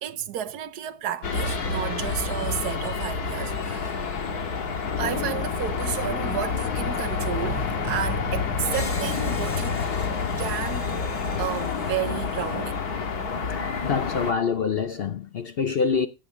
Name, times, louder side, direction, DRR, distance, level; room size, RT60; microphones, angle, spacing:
voice 1, 0.0-4.0 5.0-9.8 10.4-10.9 11.4-12.8, right 11 dB, 85° right, 1.3 m, -32 dB
sound 1, 1.2-14.3, left 5 dB, 75° left, 2.0 m, -28 dB
Screech, 8.6-12.6, left 2 dB, 30° left, 2.1 m, -42 dB
voice 2, 13.8-16.1, left 5 dB, 55° left, 0.7 m, -25 dB
15.0 x 8.5 x 3.7 m
omnidirectional pair, 1.7 m